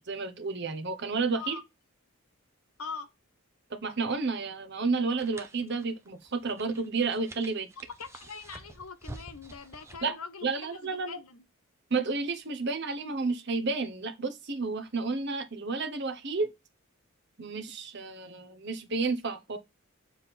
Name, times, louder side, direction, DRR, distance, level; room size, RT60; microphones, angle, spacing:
voice 1, 0.0-1.5 3.7-7.7 10.0-10.1 10.4-11.2 11.9-16.5 17.4-19.6, right 4 dB, 50° right, 1.0 m, -31 dB
sound 1, 5.1-10.1, right 2 dB, 10° right, 0.7 m, -48 dB
voice 2, 8.0-11.4, left 5 dB, 85° left, 1.1 m, -43 dB
7.2 x 3.7 x 4.1 m
head